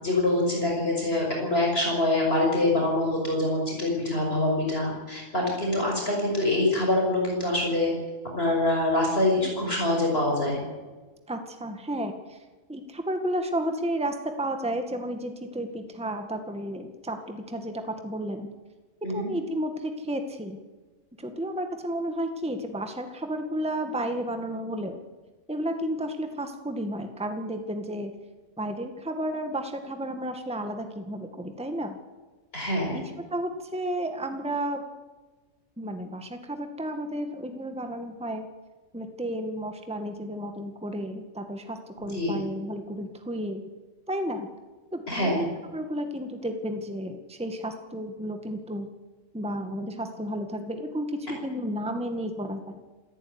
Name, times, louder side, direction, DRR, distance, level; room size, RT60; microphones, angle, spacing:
voice 1, 0.0-7.9 8.4-10.6 19.0-19.3 32.5-33.0 42.1-42.4 45.1-45.4, left 1 dB, 45° left, -1 dB, 6.0 m, -25 dB
voice 2, 11.3-12.4 12.7-18.5 19.1-20.6 21.2-25.0 25.5-28.1 28.6-32.0 32.9-33.0 33.3-34.8 35.8-38.5 38.9-43.6 44.1-44.5 44.9-48.9 49.3-52.8, right 1 dB, 5° right, 6 dB, 1.8 m, -32 dB
28.0 x 14.5 x 9.7 m, 1.3 s
omnidirectional pair, 1.5 m